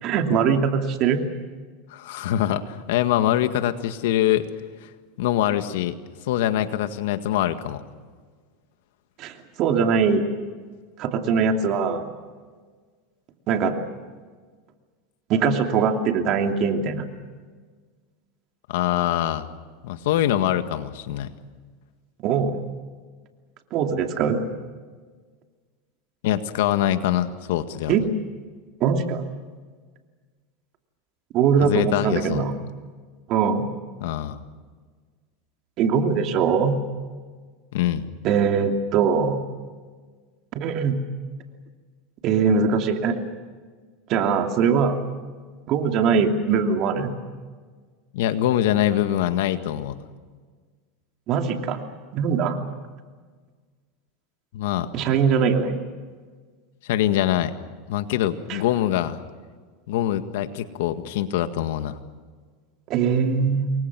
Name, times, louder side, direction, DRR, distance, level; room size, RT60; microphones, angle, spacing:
voice 1, 0.0-1.2 9.2-10.2 11.0-12.0 13.5-13.8 15.3-17.0 22.2-22.6 23.7-24.4 27.9-28.0 28.8-29.2 31.3-32.5 33.3-33.7 35.8-36.8 38.2-39.4 40.5-41.0 42.2-43.2 44.1-45.0 45.7-47.1 51.3-51.8 52.1-52.6 54.9-55.8 58.5-58.6 62.9-63.7, right 6 dB, 45° right, 4 dB, 2.9 m, -21 dB
voice 2, 1.9-4.5 4.8-4.9 5.2-6.0 6.3-7.8 18.7-19.5 19.8-21.3 26.2-27.9 31.6-32.4 34.0-34.4 37.7-38.1 48.1-50.0 54.5-54.9 56.8-57.5 57.9-59.2 59.9-62.0, left 12 dB, 80° left, 9 dB, 1.8 m, -24 dB
28.5 x 23.0 x 6.2 m, 1.5 s
supercardioid pair, 125°, 0 cm